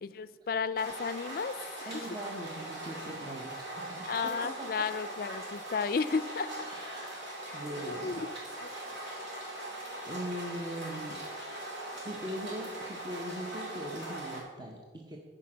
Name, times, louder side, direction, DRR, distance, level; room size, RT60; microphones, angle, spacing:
voice 1, 0.0-2.1 4.1-6.7 7.9-8.3 8.6-8.7, left 5 dB, 50° left, 15 dB, 0.3 m, -33 dB
sound 1, 0.8-14.4, right 1 dB, 80° right, 2.8 m, -41 dB
voice 2, 1.9-4.7 6.6-8.2 8.7-9.2 10.0-11.2 11.9-15.2, right 1 dB, 25° right, 0 dB, 0.7 m, -41 dB
10.0 x 4.9 x 6.2 m, 1.5 s
head